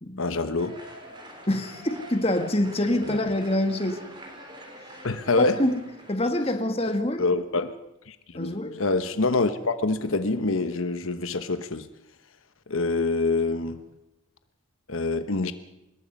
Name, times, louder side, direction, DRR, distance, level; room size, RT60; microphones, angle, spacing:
voice 1, 0.2-0.8 3.0-3.2 5.0-5.6 6.8-6.9 7.2-7.8 8.1-11.9 12.7-13.8 14.9-15.5, left 3 dB, 80° left, 10 dB, 1.1 m, -26 dB
sound 1, 0.6-6.2, right 1 dB, 20° right, 4.1 m, -45 dB
voice 2, 1.5-4.0 5.6-5.7 6.1-7.2 8.3-8.7, left 1 dB, 30° left, 6 dB, 1.8 m, -25 dB
25.5 x 21.0 x 5.4 m, 0.92 s
head